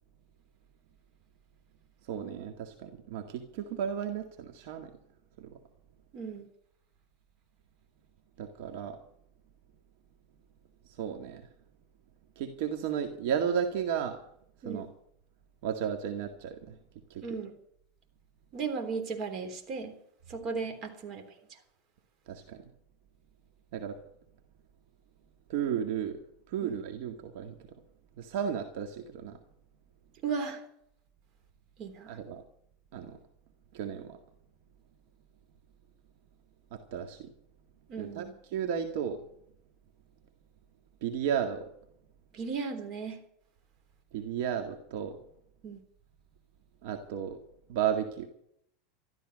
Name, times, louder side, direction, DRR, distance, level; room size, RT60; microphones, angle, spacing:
voice 1, 2.1-4.9 5.4-5.6 8.4-9.0 10.9-11.5 12.4-14.2 14.6-14.9 15.6-16.8 17.1-17.2 22.3-22.6 23.7-24.0 25.5-26.2 26.5-27.6 28.2-29.4 32.1-32.4 32.9-33.2 33.7-34.2 36.7-37.3 38.0-38.3 38.5-39.2 41.0-41.6 44.1-45.2 46.8-47.4 47.7-48.3, right 8 dB, 65° right, 6 dB, 1.9 m, -33 dB
voice 2, 6.1-6.5 14.6-14.9 17.2-17.5 18.5-20.0 20.3-21.6 26.6-26.8 30.2-30.6 31.8-32.2 37.9-38.3 42.3-43.2 45.6-45.8, right 5 dB, 40° right, 6 dB, 3.5 m, -36 dB
13.5 x 13.5 x 6.4 m, 0.70 s
supercardioid pair, 140°, 0 cm